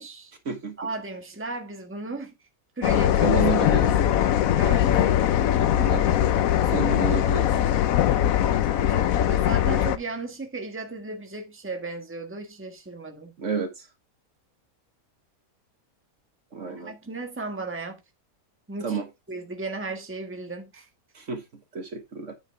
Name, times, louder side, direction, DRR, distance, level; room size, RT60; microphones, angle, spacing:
voice 1, 0.0-0.3 0.8-2.3 2.8-3.3 4.6-4.9 8.8-13.3 16.7-18.0 18.7-19.0 19.3-20.8, right 3 dB, 10° right, 1.4 m, -35 dB
sound 1, 2.8-10.0, left 11 dB, 70° left, 1.1 m, -21 dB
voice 2, 3.2-3.9 5.7-6.1 6.7-7.5 13.4-13.9 16.5-16.9 18.8-19.1 21.1-21.4 21.7-22.3, right 5 dB, 55° right, 1.6 m, -30 dB
9.8 x 5.6 x 3.5 m
omnidirectional pair, 1.5 m